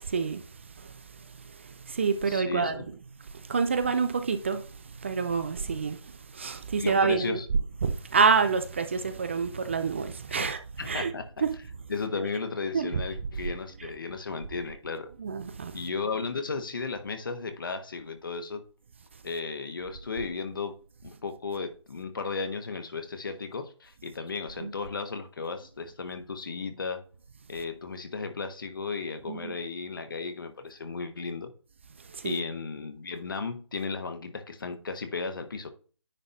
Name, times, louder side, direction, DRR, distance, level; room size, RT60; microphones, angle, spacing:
voice 1, 0.1-0.4 1.9-2.8 3.5-4.6 5.0-6.0 6.3-7.4 7.8-10.6 10.9-11.1 11.4-11.5 12.7-12.9 15.2-15.7 24.6-24.7 29.3-29.5 32.2-32.4, right 5 dB, 25° right, 0.5 m, -27 dB
voice 2, 2.3-2.9 6.8-7.5 10.3-10.5 10.8-11.4 11.9-15.1 15.7-18.6 19.2-20.8 21.0-27.0 27.5-31.5 32.2-35.7, left 4 dB, 50° left, 1.4 m, -35 dB
10.0 x 3.9 x 3.9 m
figure-of-eight pair, 160°, 15 cm